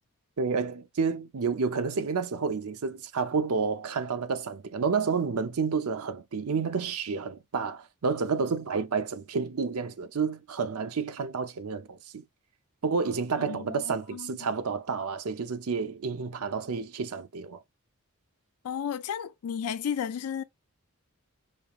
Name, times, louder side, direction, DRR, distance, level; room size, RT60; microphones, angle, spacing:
voice 1, 0.4-12.2 12.8-17.6, right 5 dB, 80° right, 0.6 m, -30 dB
voice 2, 13.5-14.5 18.6-20.4, left 8 dB, 80° left, 0.4 m, -33 dB
5.4 x 2.3 x 3.0 m
head